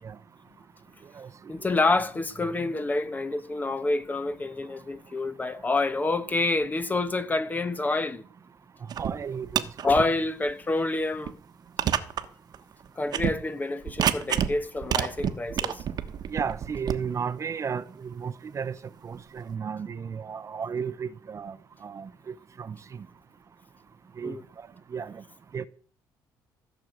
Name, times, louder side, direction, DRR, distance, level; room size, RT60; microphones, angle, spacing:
voice 1, 1.5-8.2 9.8-11.4 13.0-15.8 24.2-24.4, left 2 dB, 20° left, 1.1 m, -27 dB
sound 1, 8.9-9.1 9.4-10.0 10.5-10.6 11.3-11.4 11.8-12.3 12.5-12.6 13.1-13.4 13.9-14.5 14.8-17.0, right 9 dB, 60° right, 1.2 m, -27 dB
voice 2, 9.0-10.0 16.3-18.8 19.0-21.6 21.8-22.8 24.2-24.4 24.9-25.2 25.5-25.7, right 6 dB, 40° right, 0.8 m, -34 dB
15.5 x 6.4 x 7.9 m
cardioid pair, 100°, 8 cm